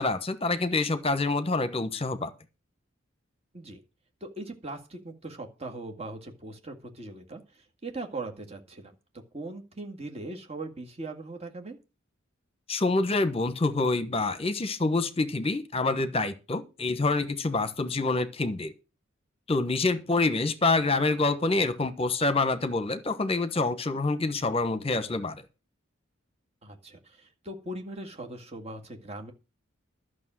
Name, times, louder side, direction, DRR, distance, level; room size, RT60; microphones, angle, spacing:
voice 1, 0.0-2.3 12.7-18.7 19.5-25.4, left 3 dB, 30° left, 1.1 m, -27 dB
voice 2, 4.2-8.9 9.3-11.8 26.6-29.3, right 2 dB, 30° right, 2.1 m, -40 dB
12.0 x 6.4 x 7.5 m
head